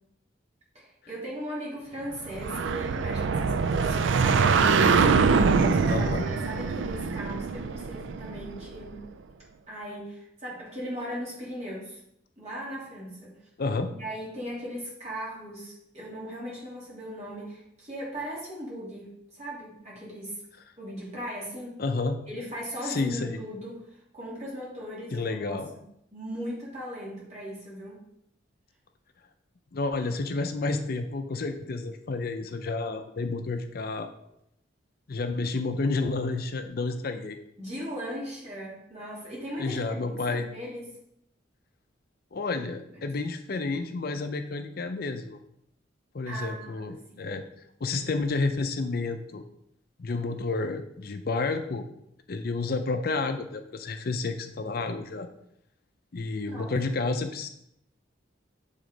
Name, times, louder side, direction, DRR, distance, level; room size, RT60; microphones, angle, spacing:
voice 1, 0.7-4.6 5.1-9.1 9.7-12.0 12.4-13.4 13.9-20.4 20.8-21.8 22.3-25.6 26.1-28.1 37.6-40.9 42.9-43.1 46.3-47.4 56.4-56.9, equal, 35° right, -6 dB, 2.8 m, -38 dB
sound 1, 2.2-8.8, right 5 dB, 75° right, 0.4 m, -24 dB
voice 2, 5.9-6.3 13.6-13.9 21.8-22.2 22.8-23.4 25.1-25.7 29.7-34.1 35.1-37.4 39.6-40.5 42.3-45.4 46.1-47.4 47.8-49.4 50.0-51.8 52.3-55.3 56.1-57.5, left 3 dB, 50° left, 7 dB, 0.5 m, -30 dB
7.7 x 3.6 x 5.1 m, 0.76 s
head